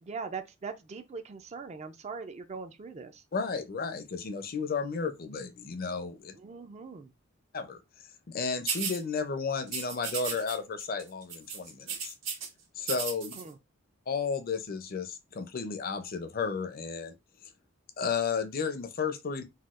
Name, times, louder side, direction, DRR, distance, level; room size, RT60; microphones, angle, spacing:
voice 1, 0.0-3.2 6.3-7.1 13.4-13.6, right 5 dB, 35° right, 0.4 m, -41 dB
voice 2, 3.3-6.4 7.5-7.8 8.3-12.1 12.8-13.3 14.1-17.1 18.0-19.4, left 5 dB, 50° left, 0.5 m, -33 dB
sound 1, 8.7-9.0 9.7-10.5 10.8-11.0 11.3-12.5 12.8-13.4, right 6 dB, 75° right, 1.1 m, -34 dB
4.1 x 2.2 x 2.4 m
head